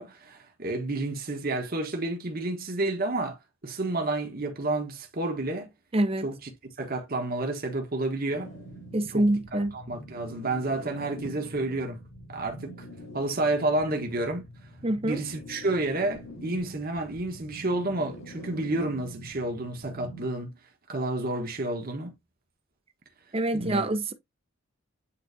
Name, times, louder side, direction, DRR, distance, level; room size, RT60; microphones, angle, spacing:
voice 1, 0.0-3.4 3.6-5.7 6.2-6.5 6.8-8.5 9.1-9.2 9.5-12.0 12.3-12.9 13.1-14.4 15.0-20.5 20.9-22.1 23.5-23.9, right 2 dB, 50° right, 1.3 m, -30 dB
voice 2, 5.9-6.2 8.9-9.8 14.8-15.2 23.3-24.1, right 1 dB, 30° right, 0.7 m, -26 dB
sound 1, 8.3-20.3, equal, 80° left, 4.4 m, -45 dB
8.7 x 3.9 x 2.7 m
head